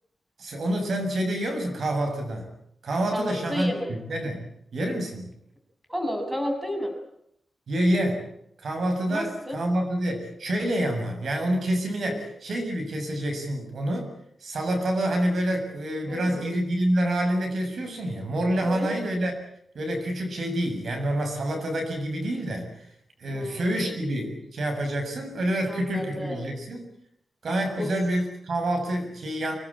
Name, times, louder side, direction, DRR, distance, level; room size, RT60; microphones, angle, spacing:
voice 1, 0.4-2.5 2.8-4.5 4.7-5.3 7.7-8.3 8.6-14.1 14.4-19.3 19.7-22.9 23.2-26.9 27.4-29.6, right 1 dB, 70° right, 5 dB, 7.2 m, -27 dB
voice 2, 3.1-3.9 5.9-6.9 9.1-9.6 12.1-12.2 16.1-16.4 18.6-18.9 23.3-23.9 25.7-26.5 27.8-27.9, left 1 dB, 10° right, 4 dB, 6.5 m, -32 dB
25.0 x 21.0 x 8.8 m, 0.75 s
wide cardioid pair, 115°, 0 cm